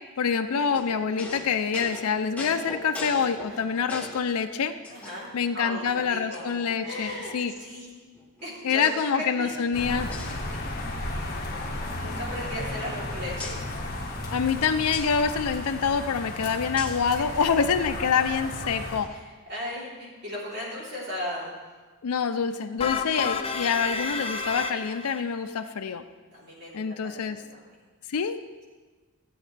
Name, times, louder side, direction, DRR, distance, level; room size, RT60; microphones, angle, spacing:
voice 1, 0.2-4.7 5.3-7.5 8.6-10.1 14.3-19.1 22.0-26.0 26.7-27.4 28.1-28.4, left 6 dB, 85° left, 8 dB, 0.5 m, -26 dB
sound 1, 0.7-4.3 4.8-5.5 5.9-6.0 6.3-7.4 8.1-9.1 9.4-10.9 11.2-11.4 11.7-13.0 13.4-13.6 14.9-15.1 16.8-17.1, left 2 dB, 5° left, 1.0 m, -41 dB
voice 2, 3.5-3.9 4.9-6.5 6.8-7.3 7.6-7.9 8.4-9.5 11.2-11.6 11.9-13.6 19.1-21.5 26.3-27.6, left 1 dB, 50° right, -6 dB, 3.4 m, -37 dB
sound 2, 9.7-19.0, left 1 dB, 45° left, 1.3 m, -34 dB
sound 3, 22.8-25.2, left 5 dB, 25° left, 0.5 m, -30 dB
16.0 x 8.7 x 3.3 m, 1.3 s
head